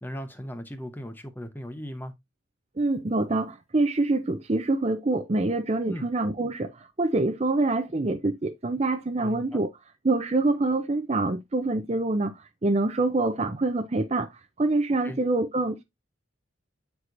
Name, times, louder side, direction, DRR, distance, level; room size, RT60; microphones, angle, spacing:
voice 1, 0.0-2.1 5.9-6.1 9.2-9.6 15.0-15.2, equal, 10° left, 0.8 m, -37 dB
voice 2, 2.8-9.7 10.0-12.4 12.6-14.3 14.6-15.8, right 2 dB, 35° right, 0.5 m, -25 dB
8.2 x 4.6 x 2.6 m
head